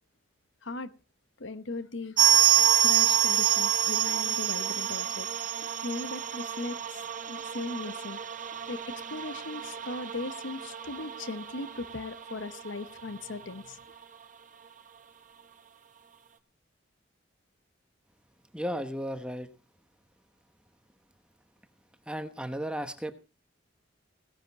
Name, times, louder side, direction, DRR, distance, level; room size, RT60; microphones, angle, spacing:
voice 1, 1.4-2.2 2.7-6.8 7.3-8.2 8.5-13.8, left 2 dB, 75° left, 1.0 m, -38 dB
sound 1, 2.2-12.7 13.0-13.1 13.3-13.4 14.0-14.1, right 10 dB, 40° right, 1.1 m, -27 dB
voice 2, 18.5-19.5 22.1-23.1, equal, 5° right, 1.0 m, -34 dB
17.0 x 10.5 x 4.2 m
head